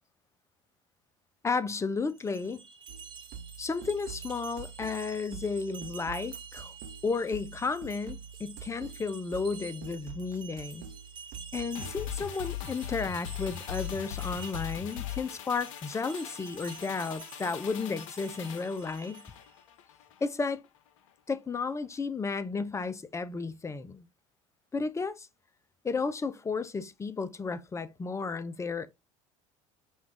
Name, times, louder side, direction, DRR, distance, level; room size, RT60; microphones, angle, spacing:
voice 1, 1.4-2.6 3.6-6.7 7.0-10.8 11.5-19.2 20.2-20.6 21.3-24.0 24.7-25.3 25.8-28.9, left 4 dB, 20° left, 0.5 m, -33 dB
sound 1, 2.1-19.5, right 6 dB, 30° right, 0.9 m, -49 dB
sound 2, 2.9-12.3, right 6 dB, 75° right, 0.8 m, -46 dB
sound 3, 11.7-20.3 20.6-20.8, left 12 dB, 85° left, 0.5 m, -40 dB
5.1 x 2.4 x 3.3 m
hypercardioid pair, 80°, 16 cm